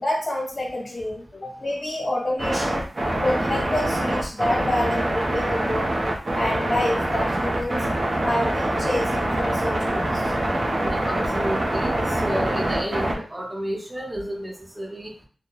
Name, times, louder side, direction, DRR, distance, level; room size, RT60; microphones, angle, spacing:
voice 1, 0.0-2.8 3.2-6.0 6.3-7.9 8.2-10.3, left 1 dB, 45° left, -2 dB, 1.2 m, -27 dB
sound 1, 2.4-13.1, right 1 dB, 55° right, 0.6 m, -25 dB
voice 2, 10.8-15.1, equal, 25° right, 0 dB, 0.9 m, -31 dB
2.3 x 2.1 x 3.0 m, 0.40 s
cardioid pair, 50°, 0 cm